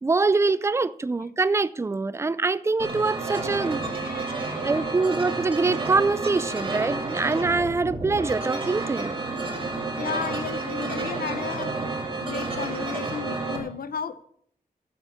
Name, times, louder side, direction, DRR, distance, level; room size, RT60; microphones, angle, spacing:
voice 1, 0.0-3.9 4.6-9.1, right 3 dB, 20° right, 0.4 m, -24 dB
sound 1, 2.8-13.6, right 3 dB, 35° right, 2.0 m, -30 dB
voice 2, 3.8-4.9 10.0-11.9 12.2-14.2, left 6 dB, 85° left, 0.7 m, -34 dB
8.2 x 7.2 x 8.5 m
wide cardioid pair, 135°, 15 cm